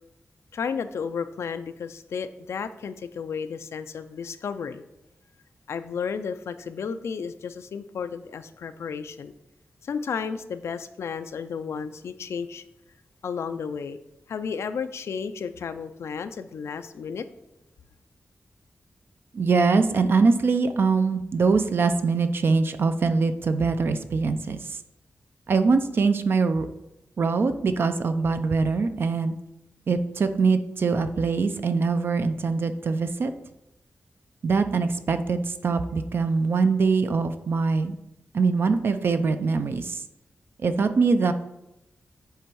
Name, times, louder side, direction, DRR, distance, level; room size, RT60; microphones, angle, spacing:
voice 1, 0.5-4.8 5.7-9.3 9.8-12.6 13.2-14.0 14.3-17.3, left 6 dB, 90° left, 10 dB, 0.4 m, -33 dB
voice 2, 19.3-24.8 25.5-26.7 27.2-29.3 29.9-33.3 34.4-37.9 38.3-40.0 40.6-41.3, right 4 dB, 55° right, 9 dB, 0.5 m, -23 dB
8.0 x 3.4 x 4.7 m, 0.89 s
wide cardioid pair, 155°, 4 cm